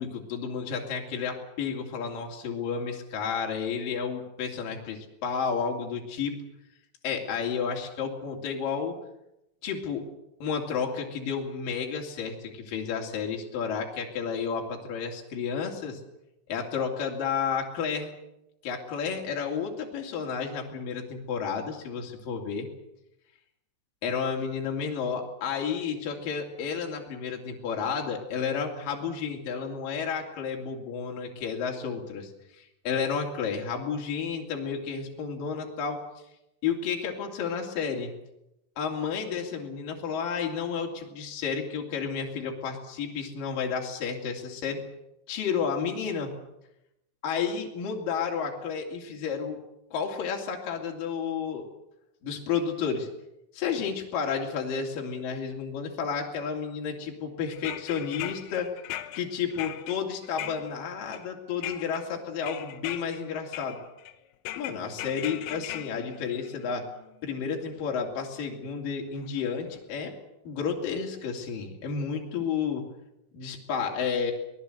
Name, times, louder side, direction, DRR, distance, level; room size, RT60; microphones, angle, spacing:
voice 1, 0.0-6.4 7.0-9.0 9.6-10.1 10.4-16.0 16.5-18.1 18.6-22.7 24.0-36.0 36.6-38.1 38.8-44.8 45.3-46.3 47.2-49.6 49.9-51.7 52.2-53.1 53.5-58.8 59.1-63.8 64.5-66.9 67.2-70.2 70.4-72.9 73.3-74.3, left 6 dB, 45° left, 1 dB, 4.1 m, -31 dB
sound 1, 57.5-61.3 61.6-62.0 62.4-63.2 63.5-64.1 64.5-67.1 68.1-68.2 69.3-69.4 69.7-69.8, left 13 dB, 85° left, 3.8 m, -39 dB
23.5 x 19.0 x 8.1 m, 0.85 s
omnidirectional pair, 5.8 m